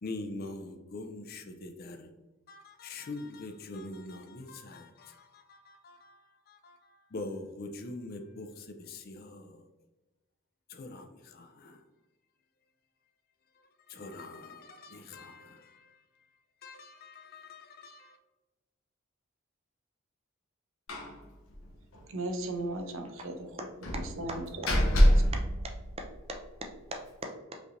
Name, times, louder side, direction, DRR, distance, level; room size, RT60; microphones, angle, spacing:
voice 1, 0.0-2.1 2.5-9.7 10.7-11.8 13.5-16.0 16.6-18.2, left 2 dB, 45° left, 0.5 m, -44 dB
Slam, 20.9-21.2 21.5-21.6 21.9-22.0 23.8-26.4, equal, 90° left, 0.8 m, -26 dB
voice 2, 22.1-23.5 23.9-25.1, right 2 dB, 70° right, 0.6 m, -36 dB
voice 3, 25.3-27.6, right 1 dB, 30° right, 0.5 m, -41 dB
5.0 x 3.2 x 2.5 m
head